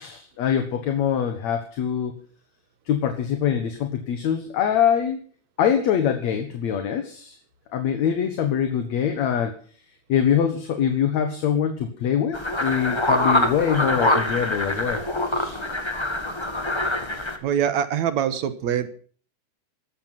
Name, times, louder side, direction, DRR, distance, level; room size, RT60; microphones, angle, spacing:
voice 1, 0.0-2.1 2.9-5.2 5.6-7.4 7.7-9.5 10.1-15.0 15.3-15.6, left 8 dB, 60° left, 6 dB, 2.6 m, -24 dB
sound 1, 12.3-17.4, left 1 dB, 15° left, 0.9 m, -24 dB
voice 2, 17.4-18.9, right 9 dB, 65° right, 12 dB, 2.3 m, -24 dB
16.0 x 13.0 x 5.9 m, 0.44 s
omnidirectional pair, 3.7 m